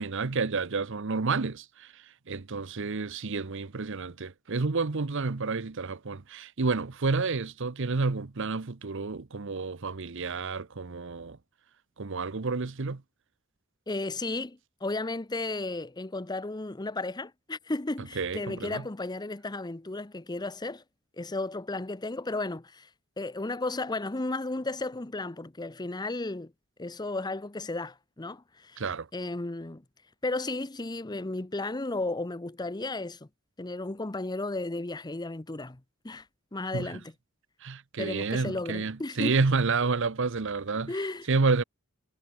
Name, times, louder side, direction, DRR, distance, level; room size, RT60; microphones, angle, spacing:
voice 1, 0.0-11.4 12.0-13.0 18.2-18.9 28.8-29.1 36.7-37.0 37.6-40.9 41.3-41.6, right 4 dB, 60° right, 0.8 m, -30 dB
voice 2, 13.9-20.8 21.2-22.9 23.2-26.5 26.8-28.8 29.1-29.8 30.2-33.3 33.6-36.3 36.5-37.1 38.0-39.4 40.9-41.3, left 2 dB, 20° left, 0.8 m, -34 dB
head